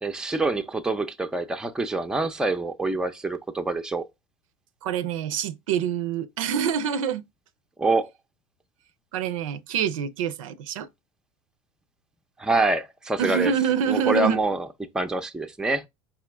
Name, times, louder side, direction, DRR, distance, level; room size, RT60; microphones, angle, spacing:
voice 1, 0.0-4.1 7.8-8.1 12.4-13.5 13.9-14.7 14.9-15.9, right 2 dB, 5° right, 0.5 m, -26 dB
voice 2, 4.8-7.2 9.1-10.9 13.2-14.4, right 8 dB, 70° right, 0.5 m, -26 dB
5.0 x 2.8 x 3.3 m
hypercardioid pair, 90°, 17 cm